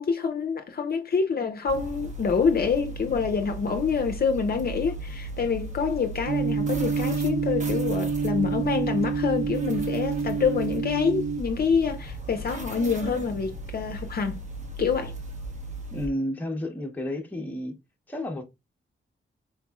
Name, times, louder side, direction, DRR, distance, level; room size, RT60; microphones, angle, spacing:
voice 1, 0.0-14.4 14.8-15.1, left 5 dB, 45° left, 0.5 m, -26 dB
sound 1, 1.7-16.1, right 1 dB, 35° right, 0.8 m, -37 dB
sound 2, 6.3-11.4, right 5 dB, 50° right, 0.5 m, -28 dB
voice 2, 15.9-17.8 18.1-18.4, left 1 dB, 10° left, 0.7 m, -31 dB
4.5 x 3.0 x 2.3 m
wide cardioid pair, 160°, 21 cm